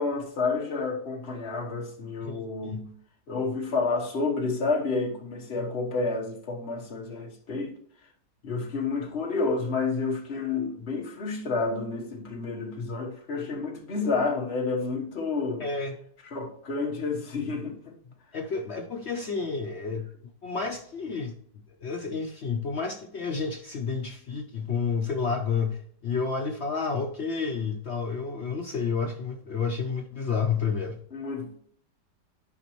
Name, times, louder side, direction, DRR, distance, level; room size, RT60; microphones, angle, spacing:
voice 1, 0.0-2.9 3.3-7.7 8.4-15.6 16.3-18.0 31.1-31.6, left 4 dB, 40° left, 1.3 m, -30 dB
voice 2, 15.6-16.0 18.3-20.1 20.4-21.3 21.8-31.0, left 5 dB, 60° left, 0.7 m, -30 dB
11.0 x 5.1 x 3.0 m
omnidirectional pair, 1.8 m